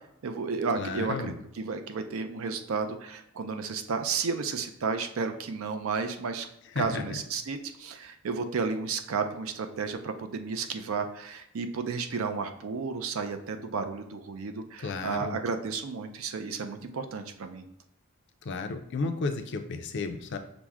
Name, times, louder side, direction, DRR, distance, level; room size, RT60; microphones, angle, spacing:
voice 1, 0.2-6.5 6.8-17.7, right 5 dB, 75° right, 7 dB, 0.5 m, -32 dB
voice 2, 0.8-1.3 6.8-7.2 14.8-15.4 18.5-20.4, left 3 dB, 55° left, 7 dB, 0.4 m, -33 dB
5.9 x 2.1 x 3.5 m, 0.79 s
head